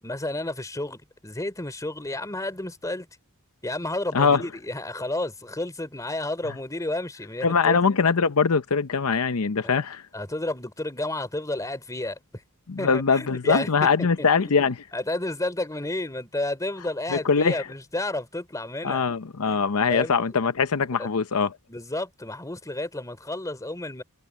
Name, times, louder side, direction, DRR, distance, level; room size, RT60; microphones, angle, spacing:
voice 1, 0.0-3.1 3.6-7.8 9.6-9.8 10.1-12.4 12.8-13.9 14.4-19.1 19.5-19.6 19.9-20.2 20.9-21.1 21.7-24.0, left 2 dB, 15° left, 3.1 m, -31 dB
voice 2, 7.4-10.0 12.7-14.8 17.1-17.6 18.8-21.5, left 5 dB, 70° left, 0.7 m, -22 dB
head